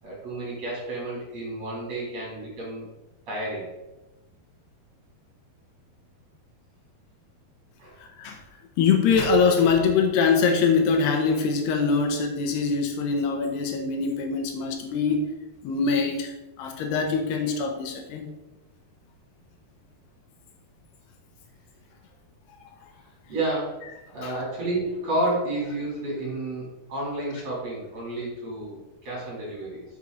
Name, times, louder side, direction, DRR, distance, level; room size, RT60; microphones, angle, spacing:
voice 1, 0.0-2.9 3.3-3.7 7.8-8.0 23.3-29.8, right 1 dB, 45° right, -5 dB, 4.2 m, -31 dB
voice 2, 8.0-8.4 8.8-15.4 15.6-18.3 24.2-24.3, left 5 dB, 80° left, 4 dB, 3.1 m, -23 dB
8.0 x 6.9 x 4.0 m, 1.0 s
omnidirectional pair, 4.6 m